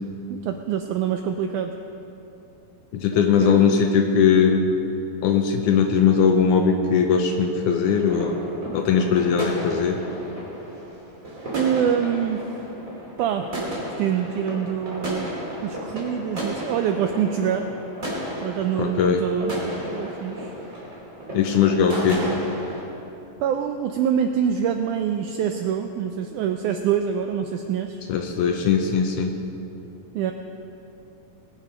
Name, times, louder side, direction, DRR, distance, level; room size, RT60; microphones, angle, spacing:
voice 1, 0.3-1.8 3.1-3.6 11.5-12.4 13.2-13.5 14.0-15.4 15.6-17.7 18.4-19.5 19.9-20.5 23.4-28.0 30.2-30.3, right 8 dB, 85° right, 6 dB, 1.7 m, -25 dB
voice 2, 2.9-4.8 5.2-8.4 8.7-10.0 18.8-19.2 21.3-22.2 28.1-29.4, left 6 dB, 75° left, 4 dB, 2.0 m, -20 dB
sound 1, 7.8-22.8, equal, 25° right, 2.9 m, -33 dB
21.0 x 7.7 x 5.3 m, 2.9 s
omnidirectional pair, 4.1 m